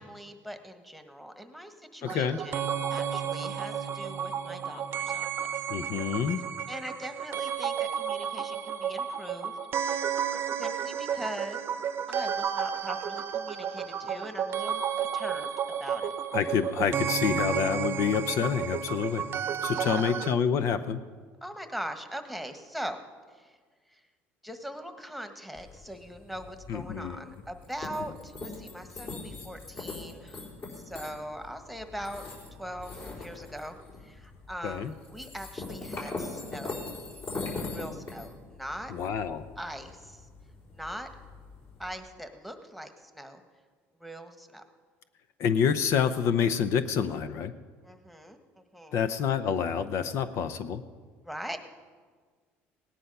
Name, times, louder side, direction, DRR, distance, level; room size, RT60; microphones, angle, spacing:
voice 1, 0.0-2.6 2.9-5.5 6.7-10.0 10.6-11.6 12.1-14.8 15.1-15.5 15.8-16.1 19.7-20.1 21.4-23.0 23.3-23.6 23.9-24.0 24.4-30.4 30.7-32.2 32.5-33.8 34.0-36.9 37.7-38.9 39.6-40.3 40.7-41.1 41.8-43.4 44.0-44.6 47.8-49.1 51.2-51.6, equal, ahead, 6 dB, 1.4 m, -41 dB
voice 2, 2.0-2.4 5.7-6.4 16.3-19.2 19.6-21.0 26.7-27.2 34.6-34.9 38.9-39.4 45.4-47.5 48.9-50.8, left 7 dB, 65° left, 11 dB, 0.7 m, -27 dB
sound 1, 2.1-20.3, right 8 dB, 50° right, 0.8 m, -32 dB
sound 2, 25.5-42.0, left 3 dB, 45° left, 4.2 m, -42 dB
17.5 x 10.0 x 5.5 m, 1.5 s
supercardioid pair, 95°, 5 cm